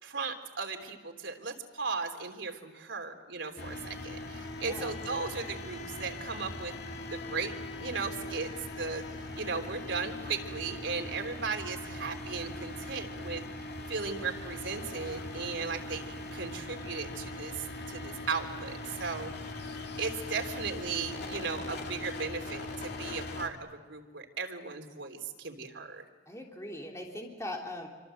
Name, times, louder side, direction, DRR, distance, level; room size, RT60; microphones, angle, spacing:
voice 1, 0.0-6.7 7.1-9.0 9.3-13.4 13.9-16.0 16.3-19.3 20.0-26.0, right 4 dB, 90° right, 3 dB, 3.4 m, -36 dB
sound 1, 3.6-23.5, left 2 dB, 60° left, 2.6 m, -41 dB
voice 2, 4.6-4.9 26.2-27.9, left 1 dB, 15° left, 0 dB, 3.4 m, -40 dB
27.0 x 25.0 x 7.8 m, 1.5 s
head